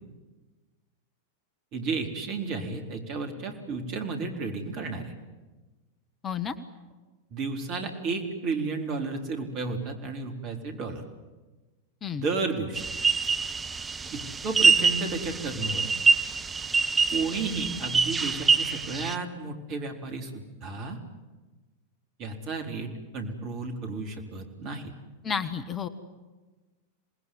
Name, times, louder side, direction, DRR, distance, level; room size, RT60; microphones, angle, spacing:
voice 1, 1.7-5.1 7.3-11.0 12.2-12.9 14.1-15.9 17.1-20.3 20.6-21.0 22.2-24.9, right 4 dB, 40° right, 4 dB, 4.0 m, -32 dB
voice 2, 6.2-6.5 12.0-12.2 25.2-25.9, left 7 dB, 25° left, 11 dB, 1.4 m, -31 dB
sound 1, 12.8-19.2, right 4 dB, 15° right, 1.2 m, -25 dB
27.5 x 20.0 x 9.5 m, 1.2 s
figure-of-eight pair, 90°, 0 cm